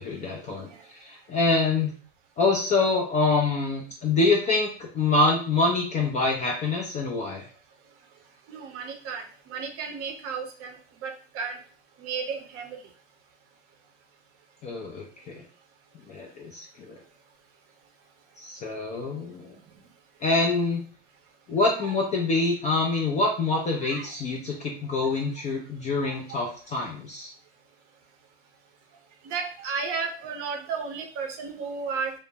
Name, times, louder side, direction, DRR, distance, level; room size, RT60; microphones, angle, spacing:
voice 1, 0.0-1.9 2.4-7.5 14.6-15.4 16.1-17.0 18.4-19.5 20.2-20.8 21.5-27.3, left 3 dB, 20° left, -1 dB, 0.3 m, -26 dB
voice 2, 8.5-10.7 11.0-11.6 12.0-12.8 23.8-24.1 29.2-32.1, right 5 dB, 40° right, 4 dB, 0.6 m, -33 dB
2.0 x 2.0 x 3.3 m, 0.40 s
hypercardioid pair, 100°, 38 cm